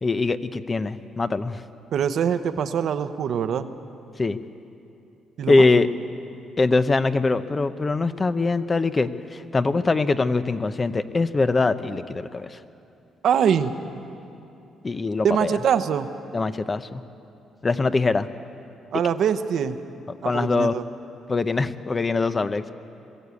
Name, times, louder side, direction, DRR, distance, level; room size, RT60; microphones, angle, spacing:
voice 1, 0.0-1.6 4.2-4.4 5.5-5.9 6.6-12.6 14.8-15.5 16.3-17.0 17.6-18.3 20.2-20.7 21.3-22.7, left 3 dB, 30° left, 12 dB, 0.8 m, -22 dB
voice 2, 1.9-3.7 5.4-5.7 13.2-13.7 15.2-16.1 18.9-19.8 20.2-20.8, right 8 dB, 70° right, 10 dB, 0.9 m, -23 dB
22.0 x 14.5 x 8.4 m, 2.7 s
cardioid pair, 90°, 0 cm